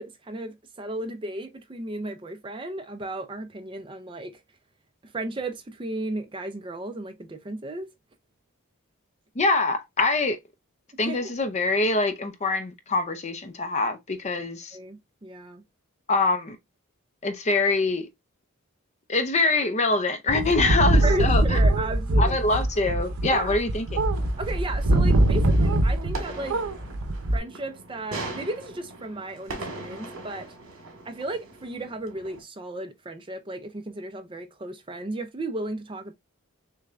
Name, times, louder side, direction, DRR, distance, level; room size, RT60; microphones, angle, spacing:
voice 1, 0.0-4.4 5.0-7.9 11.0-11.3 14.7-15.6 21.0-22.4 23.3-23.6 24.4-26.6 27.3-30.5 31.0-36.1, right 2 dB, 25° right, 0.5 m, -34 dB
voice 2, 9.4-10.4 11.0-14.8 16.1-16.6 17.2-18.1 19.1-21.6 22.2-23.9, left 3 dB, 30° left, 0.5 m, -24 dB
sound 1, 20.3-26.2 26.5-27.4, right 1 dB, 80° right, 0.7 m, -22 dB
sound 2, 23.9-32.4, right 2 dB, 65° right, 1.9 m, -40 dB
6.5 x 2.2 x 2.5 m
head